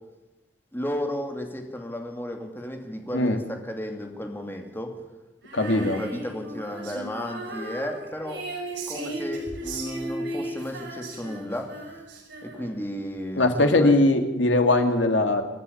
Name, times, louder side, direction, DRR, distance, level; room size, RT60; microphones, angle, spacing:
voice 1, 0.7-4.9 5.6-8.4 8.9-11.8 12.4-14.0, equal, 10° left, 3 dB, 2.7 m, -33 dB
Female singing, 5.4-12.9, right 1 dB, 70° right, 6.5 m, -36 dB
voice 2, 5.5-6.0 13.4-15.4, left 2 dB, 85° left, 5 dB, 2.6 m, -20 dB
28.0 x 11.0 x 8.8 m, 1.1 s
head